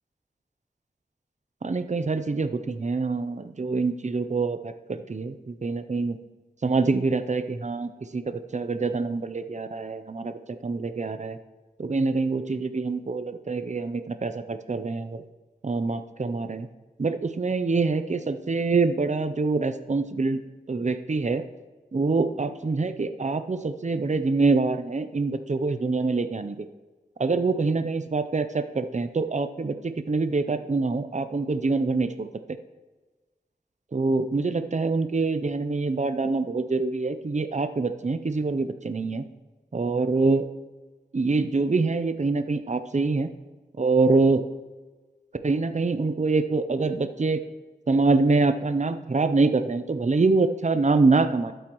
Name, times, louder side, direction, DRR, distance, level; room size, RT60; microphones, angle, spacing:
voice 1, 1.6-6.2 6.6-11.4 11.8-15.2 15.6-16.7 17.0-20.4 20.7-21.4 21.9-26.7 27.2-32.3 33.9-39.2 39.7-40.5 41.1-43.3 43.8-44.4 45.4-47.4 47.9-51.5, right 3 dB, 45° right, 10 dB, 0.5 m, -25 dB
12.5 x 8.0 x 3.0 m, 1.3 s
wide cardioid pair, 55°, 17 cm